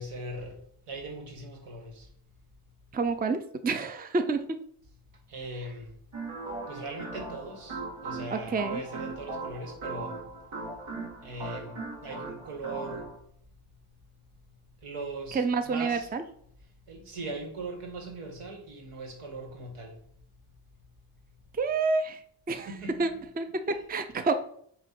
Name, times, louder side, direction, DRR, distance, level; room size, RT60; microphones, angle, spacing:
voice 1, 0.0-2.1 5.3-5.9 6.7-10.3 11.2-13.1 14.8-16.1 16.9-20.0 22.5-23.3, right 2 dB, 90° right, 2.1 m, -40 dB
voice 2, 2.9-4.6 8.3-8.8 15.3-16.2 21.5-22.2 22.5-22.7 23.0-23.1 23.4-24.3, right 4 dB, 20° right, 0.4 m, -28 dB
sound 1, 6.1-13.2, right 3 dB, 70° right, 2.0 m, -39 dB
9.0 x 3.0 x 5.9 m
wide cardioid pair, 155°, 50 cm